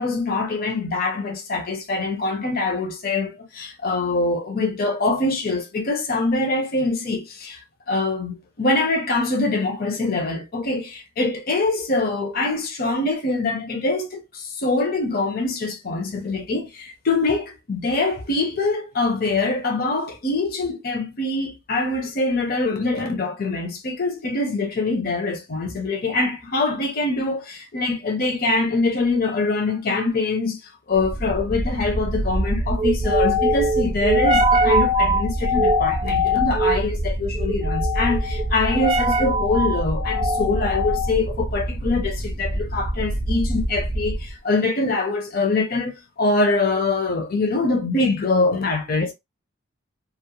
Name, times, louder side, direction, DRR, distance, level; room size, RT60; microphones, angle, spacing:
voice 1, 0.0-7.6 7.9-30.6 30.9-49.1, left 3 dB, 45° left, 0.6 m, -24 dB
sound 1, 31.0-44.3, equal, 25° right, 0.3 m, -22 dB
2.4 x 2.0 x 2.8 m
head